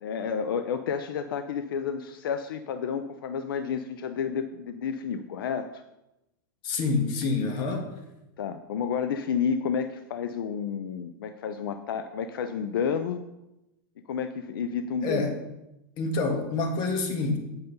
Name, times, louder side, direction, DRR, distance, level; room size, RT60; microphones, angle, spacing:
voice 1, 0.0-5.8 8.4-13.2 14.1-15.3, left 7 dB, 85° left, 9 dB, 0.5 m, -30 dB
voice 2, 6.6-7.9 15.0-15.3 16.0-17.4, left 3 dB, 45° left, 3 dB, 1.7 m, -27 dB
8.0 x 5.3 x 5.3 m, 0.92 s
hypercardioid pair, 130°, 12 cm